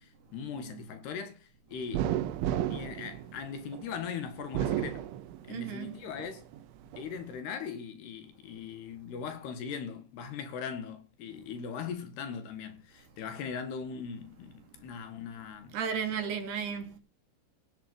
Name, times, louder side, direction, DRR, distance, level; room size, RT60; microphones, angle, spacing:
voice 1, 0.0-2.1 2.7-5.1 5.4-6.5 7.0-15.8, left 6 dB, 65° left, 3.5 m, -40 dB
sound 1, 1.9-3.9 4.4-5.7 6.2-7.1, right 12 dB, 85° right, 3.4 m, -32 dB
voice 2, 5.5-5.9 15.7-17.0, right 7 dB, 60° right, 4.5 m, -34 dB
17.5 x 8.8 x 5.4 m
omnidirectional pair, 5.4 m